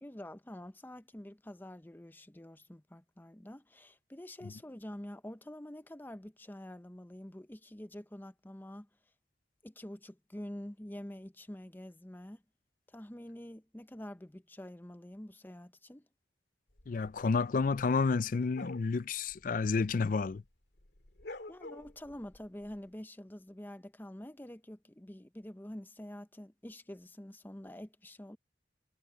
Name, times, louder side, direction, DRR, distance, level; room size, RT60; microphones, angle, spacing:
voice 1, 0.0-8.9 9.6-12.4 12.9-16.1 21.5-28.4, left 1 dB, 10° left, 0.7 m, -47 dB
sound 1, 16.8-20.5 20.7-22.8, left 2 dB, 70° left, 2.2 m, -50 dB
voice 2, 16.9-20.4, left 4 dB, 50° left, 0.4 m, -30 dB
head